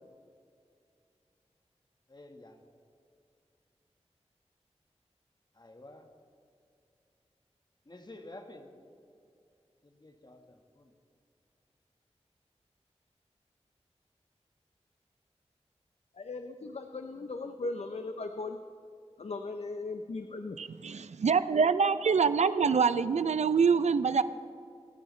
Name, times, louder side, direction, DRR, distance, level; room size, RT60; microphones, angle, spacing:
voice 1, 2.1-2.6 5.5-6.1 7.8-8.7 9.8-10.9, left 1 dB, 40° left, 4 dB, 1.5 m, -50 dB
voice 2, 16.1-18.6 19.2-20.6, left 3 dB, 70° left, 6 dB, 0.6 m, -38 dB
voice 3, 20.6-24.2, right 5 dB, 80° right, 13 dB, 0.4 m, -25 dB
27.5 x 9.4 x 3.2 m, 2.4 s
wide cardioid pair, 50°, 11 cm